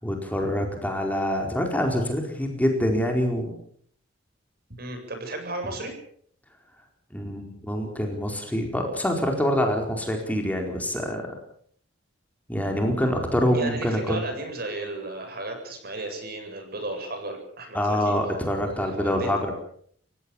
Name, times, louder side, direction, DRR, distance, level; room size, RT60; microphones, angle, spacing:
voice 1, 0.0-3.5 7.1-11.2 12.5-14.3 17.7-19.5, equal, 10° left, 2 dB, 4.5 m, -25 dB
voice 2, 4.8-5.9 13.5-18.1 18.6-19.3, right 2 dB, 55° right, 5 dB, 7.8 m, -34 dB
28.5 x 16.5 x 7.3 m, 0.62 s
head